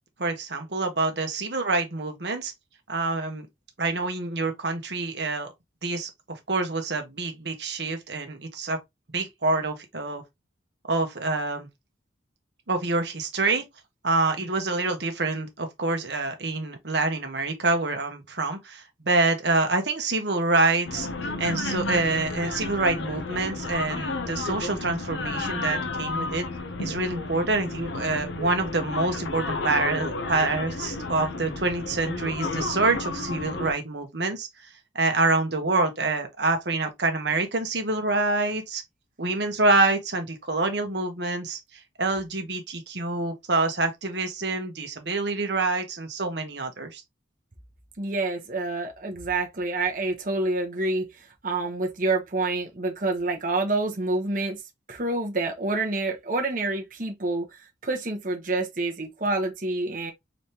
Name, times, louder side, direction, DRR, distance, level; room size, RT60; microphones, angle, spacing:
voice 1, 0.2-2.5 2.9-3.5 3.8-5.5 5.8-8.8 9.1-10.2 10.9-11.7 12.7-13.6 14.0-26.5 26.8-34.5 34.9-38.8 39.2-47.0, right 3 dB, 65° right, 1.3 m, -26 dB
sound 1, 20.9-33.7, left 3 dB, 75° left, 0.8 m, -32 dB
voice 2, 48.0-54.6 54.9-60.1, right 2 dB, 45° right, 1.2 m, -28 dB
4.1 x 3.5 x 2.9 m
head